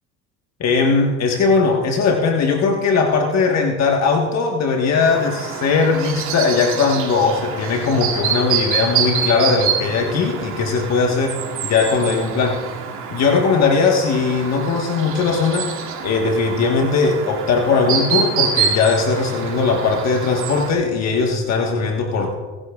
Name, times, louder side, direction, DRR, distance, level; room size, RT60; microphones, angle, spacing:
voice 1, 0.6-12.6 13.1-22.3, left 4 dB, 60° left, 2 dB, 1.4 m, -19 dB
Chirp tweet, 5.0-20.7, right 7 dB, 85° right, 2.5 m, -26 dB
23.0 x 11.0 x 2.4 m, 1.4 s
supercardioid pair, 85°, 30 cm